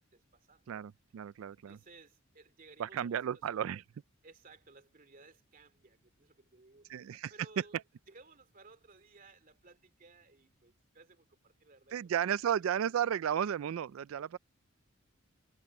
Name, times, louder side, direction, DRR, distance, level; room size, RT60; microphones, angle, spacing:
voice 1, 0.0-0.8 1.7-3.7 4.2-6.9 7.3-7.8 8.1-11.9 12.4-12.7, right 3 dB, 45° right, 2.5 m, -59 dB
voice 2, 0.7-1.8 2.8-3.8 6.9-7.3 11.9-14.4, right 9 dB, 85° right, 0.4 m, -33 dB
head